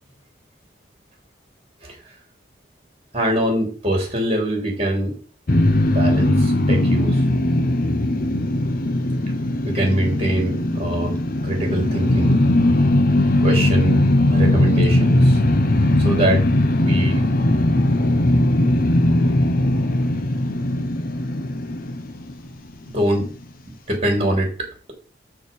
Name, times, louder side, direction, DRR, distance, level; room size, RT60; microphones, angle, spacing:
voice 1, 3.1-5.2 5.9-7.2 9.6-11.2 11.4-12.4 13.4-15.4 16.0-16.4 16.8-17.3 22.9-23.3 23.7-24.9, right 1 dB, 35° right, 1 dB, 3.7 m, -23 dB
sound 1, 5.5-22.7, left 1 dB, 55° left, 0.8 m, -19 dB
6.9 x 6.2 x 5.4 m, 0.38 s
head